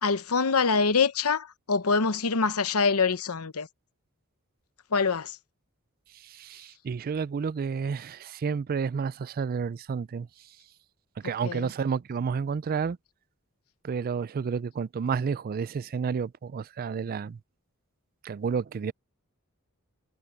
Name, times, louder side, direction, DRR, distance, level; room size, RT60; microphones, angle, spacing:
voice 1, 0.0-3.7 4.9-5.3 11.4-11.7, left 5 dB, 85° left, 0.9 m, -25 dB
voice 2, 6.2-10.3 11.2-13.0 13.8-17.4 18.2-18.9, right 6 dB, 45° right, 0.3 m, -30 dB
head